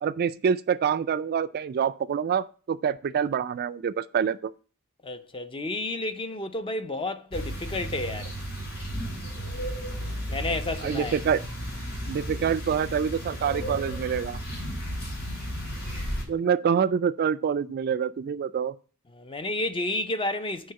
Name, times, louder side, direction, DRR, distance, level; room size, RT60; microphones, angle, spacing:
voice 1, 0.0-4.5 10.8-11.4 12.1-14.4 16.3-18.7, right 7 dB, 45° right, 0.3 m, -26 dB
voice 2, 5.0-8.3 10.3-11.2 15.6-16.3 19.1-20.7, left 2 dB, 25° left, 0.5 m, -31 dB
sound 1, 7.3-16.2, equal, 60° left, 3.6 m, -34 dB
6.3 x 4.7 x 5.6 m
head